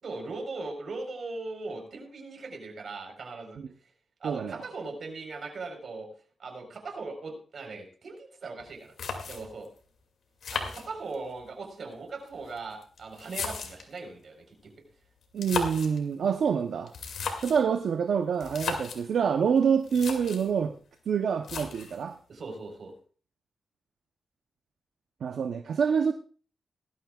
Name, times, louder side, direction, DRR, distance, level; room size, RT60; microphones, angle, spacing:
voice 1, 0.0-3.6 4.2-6.1 6.4-8.9 9.3-9.7 10.5-14.7 22.3-22.9, right 3 dB, 60° right, 3 dB, 4.2 m, -39 dB
voice 2, 4.2-4.6 15.3-16.9 17.4-20.7 21.1-22.2 25.2-26.1, right 6 dB, 75° right, 7 dB, 0.8 m, -26 dB
sound 1, 8.6-8.7 9.0-9.7 10.4-11.4 12.3-14.0 15.2-16.0 16.9-17.7 18.4-19.0 19.6-19.7 19.8-20.5 21.4-22.0, left 5 dB, 80° left, 2.4 m, -35 dB
18.0 x 13.0 x 2.4 m, 0.41 s
cardioid pair, 85°, 0 cm